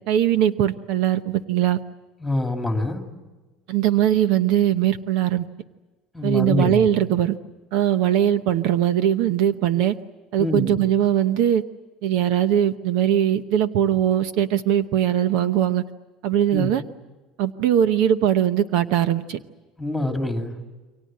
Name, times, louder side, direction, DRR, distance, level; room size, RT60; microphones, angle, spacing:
voice 1, 0.1-1.8 3.7-5.5 6.2-7.3 7.7-9.9 10.3-11.6 12.0-15.8 16.2-16.8 17.4-19.4, right 11 dB, 60° right, 11 dB, 0.9 m, -20 dB
voice 2, 2.2-3.0 6.1-6.9 10.4-10.8 16.5-16.7 19.8-20.5, left 1 dB, ahead, 3 dB, 2.5 m, -25 dB
29.0 x 24.0 x 7.6 m, 1.2 s
cardioid pair, 170°, 0 cm